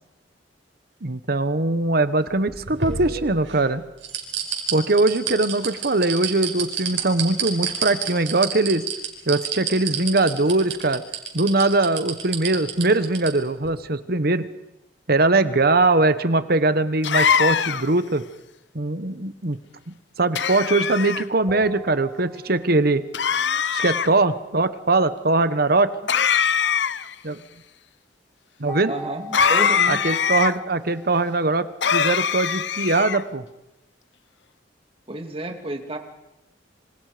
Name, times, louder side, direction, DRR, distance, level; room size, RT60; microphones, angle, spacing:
voice 1, 1.0-3.8 4.7-8.8 9.3-11.0 11.3-14.5 15.1-18.2 18.7-19.6 20.2-23.0 23.7-25.9 27.2-27.4 28.6-28.9 29.9-33.4, right 2 dB, 60° right, 12 dB, 1.3 m, -21 dB
sound 1, 2.3-3.6 4.0-13.3 13.6-13.7, right 8 dB, 85° right, 5.3 m, -28 dB
sound 2, 17.0-18.0 20.4-21.2 23.1-24.1 26.1-27.1 29.3-30.5 31.8-33.2, left 7 dB, 75° left, 0.8 m, -22 dB
sound 3, 21.5-23.0 28.7-32.0, left 1 dB, 5° left, 7.0 m, -41 dB
voice 2, 28.9-30.0 35.1-36.0, right 1 dB, 30° right, 5 dB, 2.6 m, -31 dB
26.5 x 26.0 x 5.2 m, 0.94 s
head